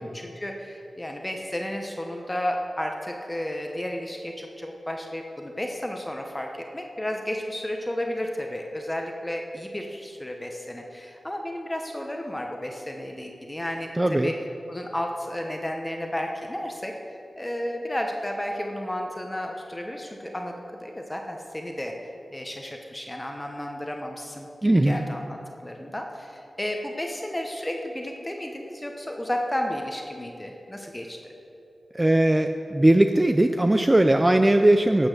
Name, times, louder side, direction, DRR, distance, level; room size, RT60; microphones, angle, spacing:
voice 1, 0.0-14.3 14.7-17.0 17.4-21.9 22.3-25.4 25.6-31.2, left 1 dB, 20° left, 2 dB, 1.0 m, -32 dB
voice 2, 14.0-14.3 24.6-25.0 31.9-35.1, right 1 dB, 25° right, 7 dB, 0.4 m, -19 dB
11.5 x 7.0 x 6.7 m, 2.8 s
cardioid pair, 60°, 0 cm